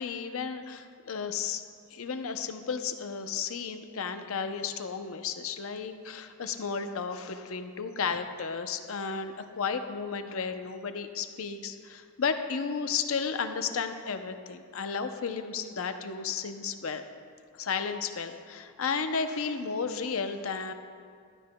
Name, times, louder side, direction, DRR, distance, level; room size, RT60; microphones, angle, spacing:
voice 1, 0.0-1.6 1.9-17.0 17.6-20.7, left 5 dB, 70° left, 8 dB, 0.6 m, -33 dB
15.0 x 12.5 x 2.2 m, 2.1 s
head